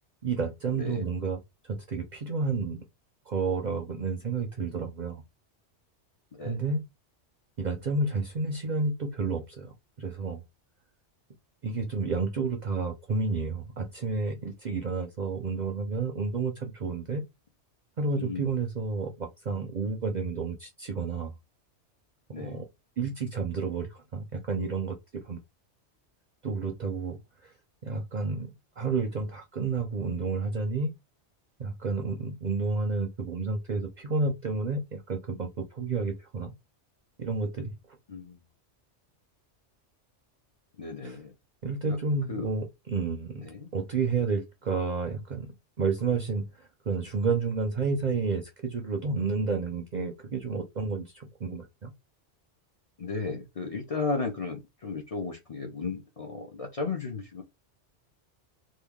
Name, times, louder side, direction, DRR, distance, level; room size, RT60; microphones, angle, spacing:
voice 1, 0.2-2.8 3.3-5.2 6.4-6.8 7.6-10.4 11.6-17.2 18.0-21.3 22.4-22.6 23.0-25.4 26.4-27.5 27.8-30.9 31.6-36.5 37.2-37.7 41.0-41.2 41.6-51.9, right 4 dB, 50° right, 0.5 m, -31 dB
voice 2, 0.7-1.0 6.3-6.7 18.2-18.5 22.3-22.6 38.1-38.4 40.8-41.3 41.8-42.0 42.3-42.5 43.5-43.7 53.0-57.4, left 4 dB, 40° left, 0.6 m, -34 dB
3.1 x 2.2 x 3.5 m
omnidirectional pair, 1.2 m